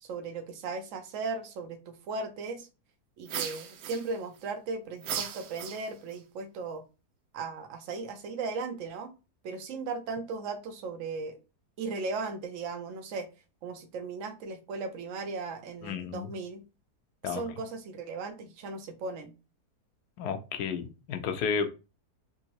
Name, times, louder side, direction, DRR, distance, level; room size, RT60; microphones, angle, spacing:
voice 1, 0.0-2.7 3.2-6.8 7.3-9.1 9.4-11.4 11.8-13.3 13.6-16.6 17.2-19.3, right 4 dB, 60° right, 7 dB, 1.0 m, -37 dB
sound 1, 3.3-4.4 5.0-6.2, right 8 dB, 85° right, 1.3 m, -37 dB
voice 2, 15.8-16.3 17.2-17.4 20.2-21.7, left 6 dB, 75° left, 7 dB, 1.2 m, -32 dB
3.6 x 2.9 x 2.9 m, 0.30 s
omnidirectional pair, 1.7 m